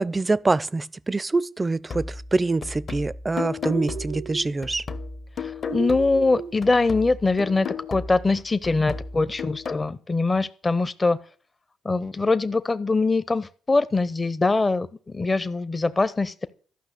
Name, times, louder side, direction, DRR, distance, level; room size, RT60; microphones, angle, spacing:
voice 1, 0.0-4.8, right 3 dB, 25° right, 0.4 m, -25 dB
sound 1, 1.9-6.3 6.6-9.9, left 5 dB, 50° left, 1.1 m, -35 dB
sound 2, 3.6-4.5 5.7-6.6, right 9 dB, 80° right, 0.6 m, -34 dB
voice 2, 5.4-11.2 11.8-16.5, left 3 dB, 30° left, 0.7 m, -23 dB
12.5 x 5.8 x 8.1 m
supercardioid pair, 65°, 0 cm